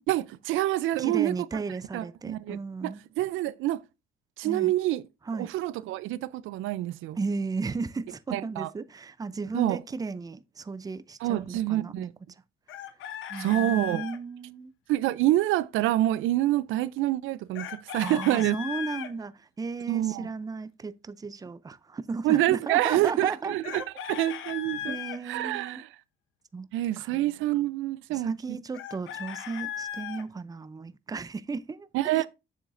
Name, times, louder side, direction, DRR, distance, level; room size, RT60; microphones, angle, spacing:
voice 1, 0.1-1.6 1.9-3.8 4.4-5.0 5.4-7.2 8.3-8.7 9.5-9.8 11.2-12.1 13.4-14.0 14.9-18.6 19.9-20.3 22.2-23.8 24.1-25.0 25.2-25.9 26.7-28.6 31.9-32.3, right 15 dB, 90° right, 0.4 m, -27 dB
voice 2, 1.0-3.0 4.4-4.7 5.3-5.5 7.1-12.1 13.3-14.7 18.0-23.9 24.9-25.8 26.5-26.7 27.0-27.1 28.1-31.9 32.1-32.3, right 4 dB, 20° right, 0.5 m, -35 dB
Chicken rooster, 12.7-14.2 17.5-19.1 23.6-25.2 28.7-30.2, left 10 dB, 80° left, 0.8 m, -37 dB
7.1 x 7.1 x 2.5 m
cardioid pair, 90°, 20 cm